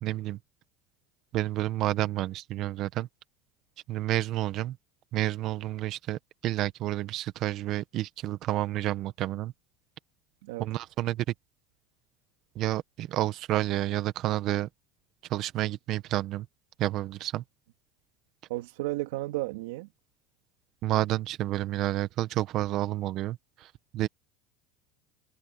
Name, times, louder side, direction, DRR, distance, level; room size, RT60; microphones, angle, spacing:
voice 1, 0.0-0.4 1.3-3.1 3.9-4.8 5.1-9.5 10.6-11.2 12.5-14.7 15.3-16.5 16.8-17.4 20.8-24.1, right 15 dB, 45° right, 1.2 m, -30 dB
voice 2, 18.5-19.9, right 19 dB, 85° right, 3.1 m, -33 dB
supercardioid pair, 140°, 0 cm